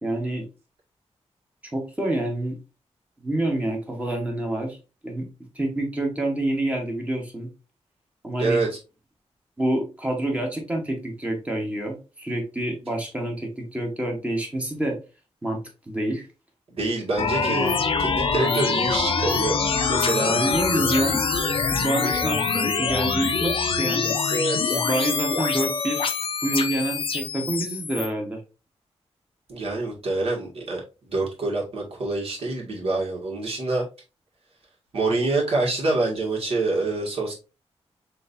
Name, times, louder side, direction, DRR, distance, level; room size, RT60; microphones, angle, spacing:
voice 1, 0.0-0.5 1.7-2.6 3.2-4.8 5.0-5.3 5.5-7.5 8.2-8.7 9.6-15.0 15.4-15.6 15.9-16.3 20.2-21.4 21.7-24.2 24.7-28.4, right 1 dB, 10° right, 1 dB, 1.1 m, -27 dB
voice 2, 16.7-19.6 19.9-20.3 24.3-24.8 29.5-33.8 34.9-37.3, right 2 dB, 60° right, -3 dB, 1.9 m, -26 dB
sound 1, 17.2-28.1, left 5 dB, 55° left, 0.6 m, -24 dB
6.3 x 2.7 x 2.6 m, 0.30 s
wide cardioid pair, 175°, 11 cm